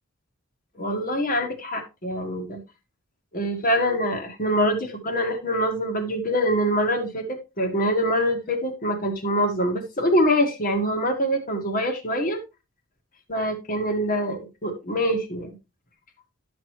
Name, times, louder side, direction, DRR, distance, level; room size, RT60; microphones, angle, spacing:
voice 1, 0.8-2.6 3.3-12.4 13.3-15.5, equal, 40° left, 5 dB, 1.7 m, -24 dB
11.5 x 6.2 x 3.1 m, 0.26 s
head